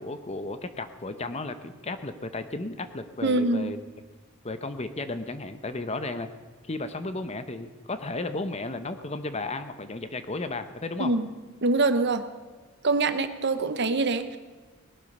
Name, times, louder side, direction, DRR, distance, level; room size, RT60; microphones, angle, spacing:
voice 1, 0.0-3.8 4.4-6.3 6.6-11.1, left 2 dB, 30° left, 10 dB, 0.9 m, -34 dB
voice 2, 3.2-3.7 11.0-11.3 11.6-12.2 12.8-14.4, right 3 dB, 50° right, 10 dB, 1.0 m, -24 dB
19.0 x 12.0 x 5.4 m, 1.4 s
head